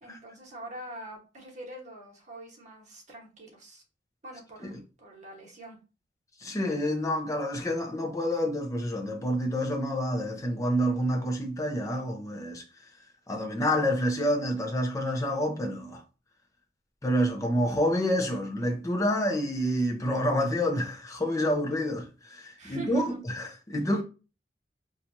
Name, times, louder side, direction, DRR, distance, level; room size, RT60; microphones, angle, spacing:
voice 1, 0.0-3.8 4.2-5.8 22.6-23.2, right 1 dB, 45° right, 1.2 m, -44 dB
voice 2, 6.4-12.6 13.3-16.0 17.0-24.0, equal, 20° left, 0.6 m, -28 dB
4.4 x 2.4 x 2.6 m
head